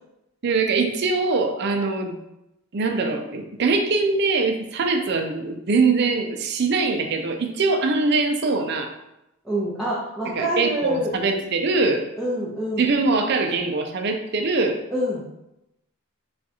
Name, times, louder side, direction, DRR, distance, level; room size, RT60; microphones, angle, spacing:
voice 1, 0.4-2.2 2.7-8.9 10.3-12.0 12.8-14.8, right 3 dB, 50° right, 4 dB, 0.5 m, -22 dB
voice 2, 9.4-11.1 12.2-12.9 14.9-15.4, equal, ahead, -9 dB, 0.8 m, -26 dB
6.3 x 2.4 x 2.9 m, 0.89 s
head